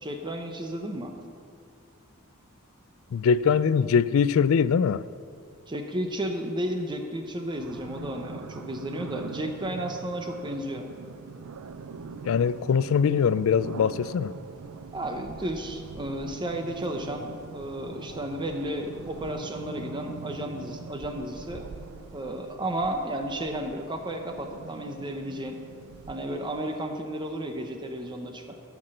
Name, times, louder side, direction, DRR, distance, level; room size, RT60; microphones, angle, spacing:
voice 1, 0.0-1.1 5.7-10.9 14.9-21.7 22.1-25.6 26.1-28.6, right 1 dB, 20° right, 0.8 m, -33 dB
voice 2, 3.1-5.0 12.3-14.3, left 6 dB, 65° left, 0.3 m, -22 dB
sound 1, 7.5-26.8, right 5 dB, 90° right, 0.5 m, -42 dB
13.5 x 6.0 x 6.4 m
head